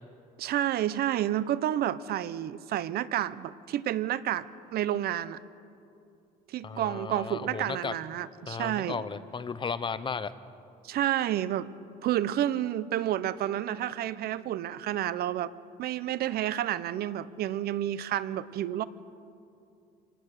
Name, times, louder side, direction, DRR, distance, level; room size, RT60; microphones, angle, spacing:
voice 1, 0.4-4.5 4.7-5.4 6.5-9.0 10.8-11.7 12.0-15.5 15.8-18.8, right 12 dB, 65° right, 17 dB, 0.8 m, -30 dB
voice 2, 6.6-7.9 8.5-10.3, left 5 dB, 30° left, 14 dB, 0.9 m, -35 dB
27.0 x 19.5 x 6.7 m, 2.5 s
cardioid pair, 110°, 17 cm